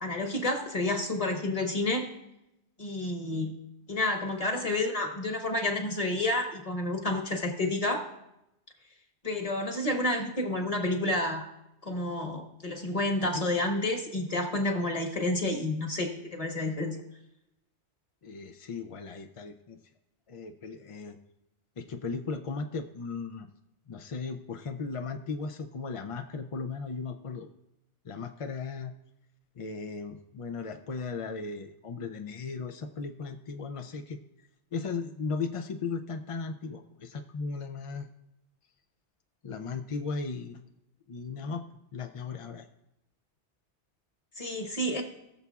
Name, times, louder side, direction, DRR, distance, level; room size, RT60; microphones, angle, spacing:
voice 1, 0.0-2.1 2.8-3.5 3.9-8.1 9.2-11.5 11.8-17.0 44.4-45.0, left 1 dB, 35° left, 3 dB, 1.3 m, -30 dB
voice 2, 18.2-19.8 20.3-21.2 21.8-23.5 23.9-27.5 28.0-28.9 29.6-34.2 34.7-38.1 39.4-40.7 41.1-41.6 41.9-42.7, left 4 dB, 55° left, 7 dB, 0.3 m, -36 dB
20.0 x 6.9 x 2.4 m, 0.86 s
omnidirectional pair, 1.2 m